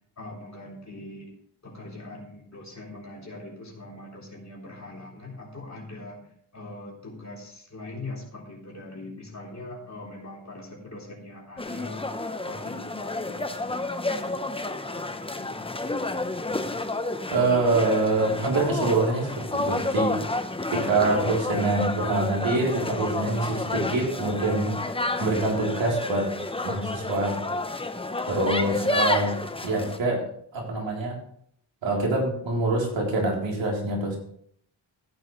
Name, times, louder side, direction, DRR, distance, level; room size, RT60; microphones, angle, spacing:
voice 1, 0.2-1.3 1.6-6.3 6.5-12.1 12.4-13.9 14.8-15.6, left 2 dB, 35° left, -3 dB, 3.7 m, -41 dB
sound 1, 11.6-30.0, left 2 dB, 10° left, 0.9 m, -30 dB
voice 2, 17.3-20.1 20.7-24.7 25.2-26.3 26.6-27.3 28.3-29.3 29.6-30.2 30.5-31.2 31.8-34.2, right 2 dB, 80° right, -2 dB, 3.7 m, -25 dB
14.5 x 9.1 x 3.2 m, 0.65 s
cardioid pair, 75°, 44 cm